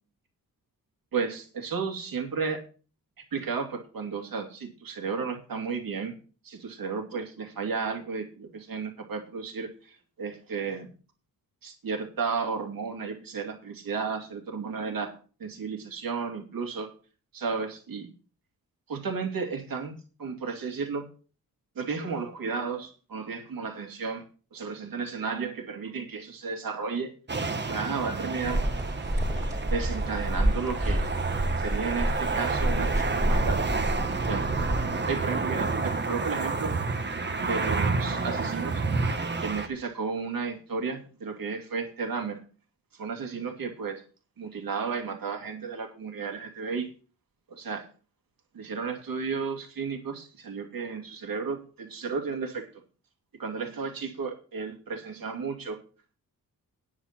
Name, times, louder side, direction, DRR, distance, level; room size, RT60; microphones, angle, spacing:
voice 1, 1.1-2.6 3.3-6.1 6.4-10.9 11.6-15.1 15.4-16.9 17.3-18.1 18.9-19.9 20.2-21.1 21.8-24.2 24.5-27.1 27.7-28.6 29.6-31.1 31.6-33.7 34.3-34.5 35.1-36.7 37.1-38.8 39.4-42.4 43.0-44.0 44.4-46.9 47.5-47.8 48.5-52.7 53.4-55.8, right 5 dB, 70° right, 3 dB, 2.5 m, -33 dB
sound 1, 27.3-39.7, right 4 dB, 30° right, 1.4 m, -30 dB
sound 2, 28.4-34.8, equal, 10° right, 2.9 m, -29 dB
9.7 x 8.4 x 5.9 m, 0.38 s
wide cardioid pair, 120°, 35 cm